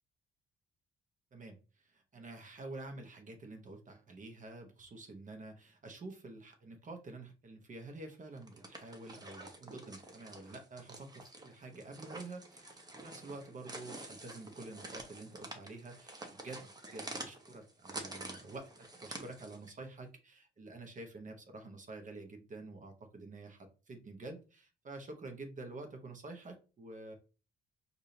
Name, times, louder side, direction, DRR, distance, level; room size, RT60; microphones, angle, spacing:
voice 1, 1.3-27.1, right 2 dB, 40° right, 4 dB, 1.0 m, -48 dB
sound 1, 8.4-19.7, right 2 dB, 20° right, 0.9 m, -48 dB
4.8 x 2.7 x 2.8 m, 0.34 s
cardioid pair, 90°, 20 cm